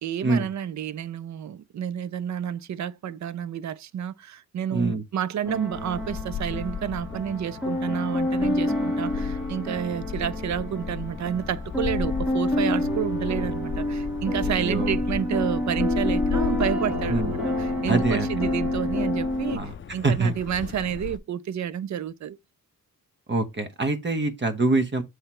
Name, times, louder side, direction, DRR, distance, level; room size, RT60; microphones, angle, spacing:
voice 1, 0.0-22.4, right 9 dB, 55° right, 0.5 m, -30 dB
voice 2, 4.7-5.0 14.4-15.0 17.1-17.4 17.9-18.3 19.5-19.7 20.0-20.3 23.3-25.0, right 3 dB, 30° right, 1.2 m, -25 dB
sound 1, 5.4-19.6, left 1 dB, 5° right, 1.4 m, -28 dB
sound 2, 5.7-21.2, left 7 dB, 35° left, 0.5 m, -35 dB
7.9 x 3.3 x 4.3 m
wide cardioid pair, 140°, 35 cm